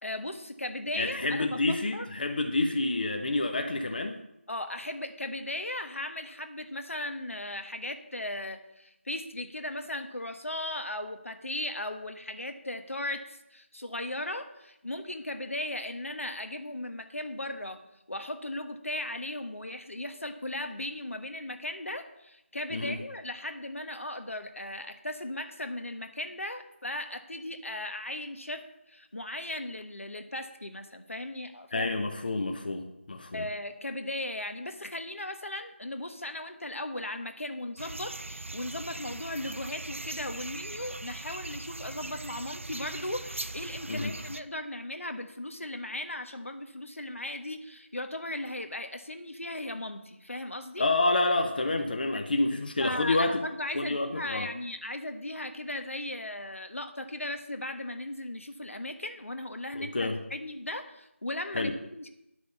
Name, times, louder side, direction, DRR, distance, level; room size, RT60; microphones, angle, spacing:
voice 1, 0.0-2.1 4.5-17.8 18.1-31.9 33.3-50.9 52.1-52.2 52.8-62.1, left 1 dB, 75° left, 7 dB, 1.4 m, -37 dB
voice 2, 1.0-4.2 22.7-23.0 31.7-33.5 43.9-44.1 50.8-53.4 53.7-54.5 59.7-60.2 61.5-61.7, left 2 dB, 40° left, 5 dB, 0.9 m, -28 dB
sound 1, 37.8-44.4, right 2 dB, 70° right, 0.6 m, -40 dB
10.5 x 6.2 x 7.0 m, 0.86 s
figure-of-eight pair, 165°, 7 cm